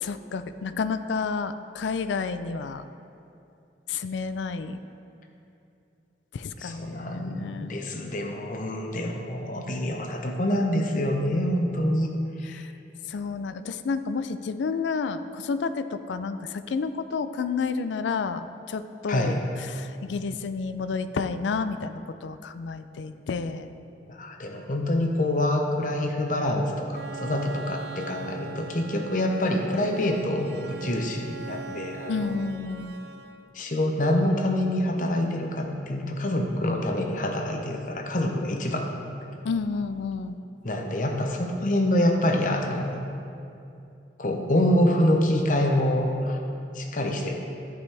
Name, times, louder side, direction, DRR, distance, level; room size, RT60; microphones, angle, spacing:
voice 1, 0.0-2.8 3.9-4.8 6.3-7.8 12.5-12.7 13.1-19.3 19.7-23.7 32.1-32.9 39.4-40.3, left 5 dB, 90° left, 11 dB, 0.4 m, -30 dB
voice 2, 6.6-12.1 12.4-12.6 19.1-19.5 24.1-32.4 33.5-39.1 40.6-43.0 44.2-46.4 46.7-47.4, left 1 dB, 45° left, 3 dB, 0.8 m, -26 dB
Bowed string instrument, 26.9-33.6, right 4 dB, 65° right, 0.4 m, -41 dB
13.0 x 5.2 x 3.4 m, 2.6 s
head